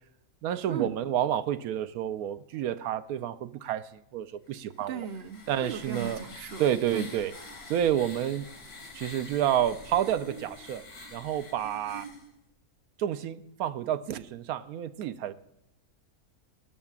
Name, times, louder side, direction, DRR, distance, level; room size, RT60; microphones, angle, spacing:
voice 1, 0.4-5.1 5.5-6.2 6.6-7.3 7.7-8.4 8.9-10.8 11.1-12.1 13.0-15.3, right 10 dB, 80° right, 12 dB, 1.0 m, -29 dB
sound 1, 4.7-12.3, left 1 dB, 80° left, 2.5 m, -46 dB
voice 2, 4.9-6.6 6.9-7.1, right 7 dB, 50° right, 8 dB, 0.8 m, -36 dB
18.5 x 12.5 x 2.4 m, 0.84 s
omnidirectional pair, 1.6 m